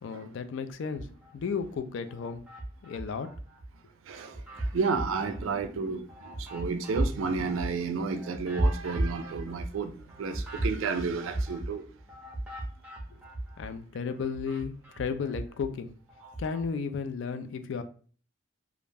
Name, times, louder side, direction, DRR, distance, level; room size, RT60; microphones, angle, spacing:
voice 1, 0.0-1.1 1.3-2.4 2.8-3.3 13.1-13.2 13.6-16.0 16.4-17.8, left 5 dB, 65° left, 0.3 m, -34 dB
sound 1, 0.8-1.7 2.1-3.7 4.1-13.8 14.1-16.7, right 1 dB, 5° right, 0.5 m, -35 dB
voice 2, 4.1-11.9, right 4 dB, 75° right, 0.4 m, -32 dB
2.4 x 2.1 x 3.3 m
head